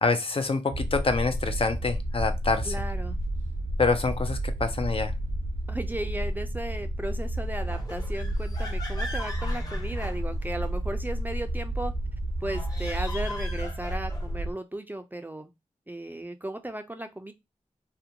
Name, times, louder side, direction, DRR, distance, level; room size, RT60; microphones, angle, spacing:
voice 1, 0.0-2.7 3.8-5.1, left 4 dB, 45° left, 0.5 m, -26 dB
sound 1, 0.7-14.5, right 1 dB, 70° right, 0.5 m, -31 dB
voice 2, 2.6-3.2 5.7-11.9 12.4-15.5 15.9-17.3, right 1 dB, 15° right, 0.4 m, -35 dB
sound 2, 7.6-10.8 12.4-14.4, left 1 dB, 30° left, 1.0 m, -40 dB
2.4 x 2.1 x 2.7 m
cardioid pair, 40°, 13 cm